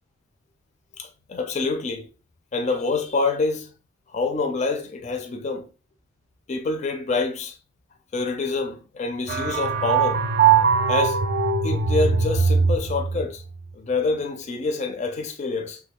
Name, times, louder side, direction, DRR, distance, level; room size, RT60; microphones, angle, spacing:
voice 1, 1.0-2.1 2.5-3.7 4.1-5.6 6.5-7.6 8.1-10.2 10.9-11.2 11.6-13.4 13.7-15.8, left 3 dB, 40° left, 0.4 m, -26 dB
sound 1, 9.3-13.3, right 6 dB, 45° right, 0.3 m, -21 dB
3.0 x 2.2 x 3.5 m
head